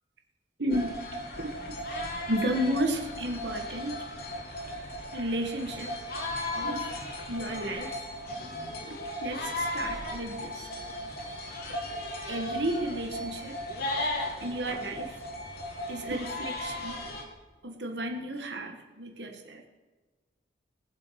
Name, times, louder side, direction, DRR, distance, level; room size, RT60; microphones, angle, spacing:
voice 1, 0.6-1.0 1.4-1.5 2.3-4.0 5.1-6.0 6.5-6.9 7.3-7.9 8.9-9.0 9.2-10.7 12.3-13.6 14.4-15.2 15.9-17.0 17.6-19.6, right 1 dB, 70° right, 4 dB, 1.6 m, -32 dB
sound 1, 0.7-17.2, left 1 dB, 60° left, 2.8 m, -36 dB
19.5 x 7.7 x 5.9 m, 1.3 s
head